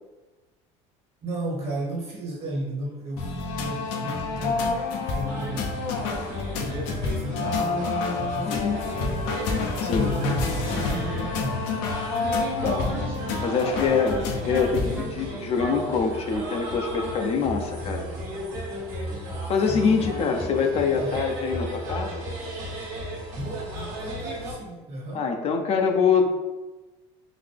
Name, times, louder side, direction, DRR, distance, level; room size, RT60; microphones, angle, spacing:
voice 1, 1.2-4.8 5.1-5.8 6.6-9.3 10.0-11.7 13.6-14.3 19.7-20.4 20.9-21.3 23.3-25.3, right 2 dB, 45° right, -3 dB, 1.5 m, -35 dB
sound 1, 3.2-15.0, left 3 dB, 80° left, 0.7 m, -28 dB
sound 2, 5.3-24.5, equal, 60° right, 1.4 m, -35 dB
voice 2, 8.4-8.8 9.8-10.1 12.6-12.9 13.4-14.2 14.4-18.1 19.5-22.2 25.1-26.3, left 5 dB, 45° left, 3 dB, 0.6 m, -24 dB
Wind instrument woodwind instrument, 10.7-16.3, right 2 dB, 10° right, 0.7 m, -40 dB
3.9 x 2.6 x 3.4 m, 1.1 s
supercardioid pair, 100°, 15 cm